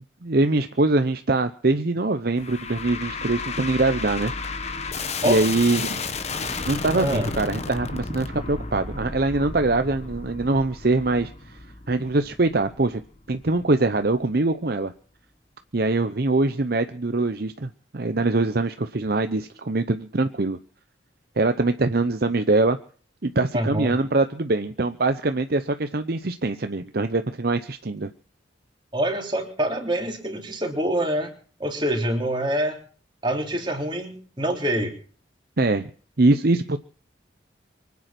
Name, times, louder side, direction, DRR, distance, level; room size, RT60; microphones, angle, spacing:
voice 1, 0.2-4.3 5.2-6.0 6.6-11.3 11.9-13.0 13.3-14.9 15.7-20.6 21.4-22.8 23.2-28.1 35.6-35.9 36.2-36.8, right 2 dB, 50° right, 9 dB, 0.8 m, -23 dB
sound 1, 2.4-13.6, left 4 dB, 35° left, 1.4 m, -33 dB
voice 2, 6.9-7.3 23.5-24.0 28.9-31.3 31.6-32.8 33.2-34.9, right 1 dB, 25° right, 2 dB, 3.6 m, -25 dB
24.5 x 9.5 x 6.0 m, 0.43 s
head